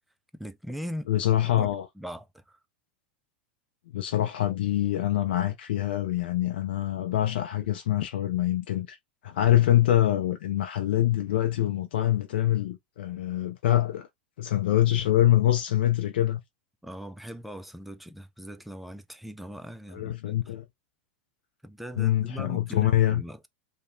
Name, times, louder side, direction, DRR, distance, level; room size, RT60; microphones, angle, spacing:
voice 1, 0.3-1.1 1.6-1.7 2.0-2.6 16.8-20.4 21.6-23.5, equal, ahead, 0.3 m, -40 dB
voice 2, 1.1-1.9 3.9-9.0 9.2-14.1 14.4-16.4 19.9-20.7 22.0-23.2, left 13 dB, 75° left, 0.4 m, -25 dB
2.8 x 2.0 x 2.5 m
hypercardioid pair, 105°, 6 cm